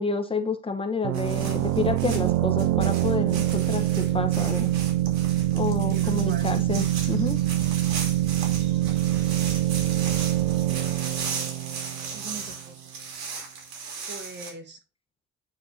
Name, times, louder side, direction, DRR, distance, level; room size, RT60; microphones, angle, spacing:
voice 1, 0.0-4.7 5.5-7.4, left 4 dB, 20° left, 4 dB, 0.9 m, -29 dB
sound 1, 1.0-12.6, right 15 dB, 90° right, 0.5 m, -25 dB
sound 2, 1.1-14.5, right 5 dB, 65° right, 2.6 m, -37 dB
voice 2, 5.9-6.5 12.1-13.0 14.1-14.8, right 4 dB, 40° right, 7 dB, 1.5 m, -42 dB
8.9 x 3.5 x 4.1 m, 0.32 s
cardioid pair, 120°, 29 cm